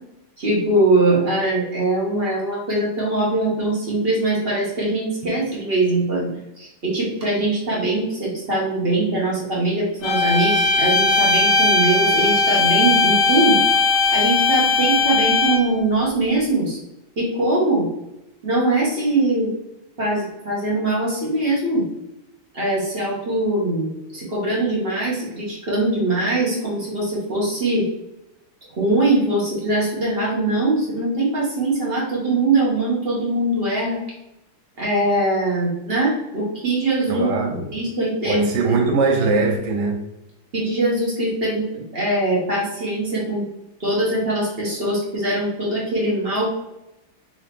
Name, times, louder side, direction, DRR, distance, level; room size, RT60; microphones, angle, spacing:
voice 1, 0.4-13.6 14.1-16.8 17.2-17.9 18.4-19.5 20.0-21.9 22.5-27.9 28.8-34.0 34.8-37.3 37.7-38.4 40.5-43.4 43.8-46.5, right 2 dB, 40° right, 0.9 m, -22 dB
sound 1, 10.0-15.8, left 3 dB, 65° left, 1.3 m, -18 dB
voice 2, 37.1-37.7 38.2-40.0, right 3 dB, 70° right, 1.1 m, -20 dB
3.8 x 2.9 x 3.3 m
omnidirectional pair, 2.2 m